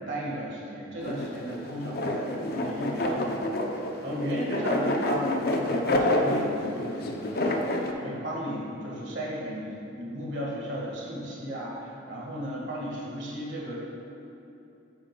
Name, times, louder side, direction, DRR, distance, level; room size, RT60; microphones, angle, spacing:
voice 1, 0.0-3.6 4.0-13.8, equal, 60° right, -4 dB, 1.6 m, -35 dB
sound 1, 1.0-7.9, left 1 dB, 50° left, 0.5 m, -28 dB
8.5 x 7.7 x 2.2 m, 2.8 s
head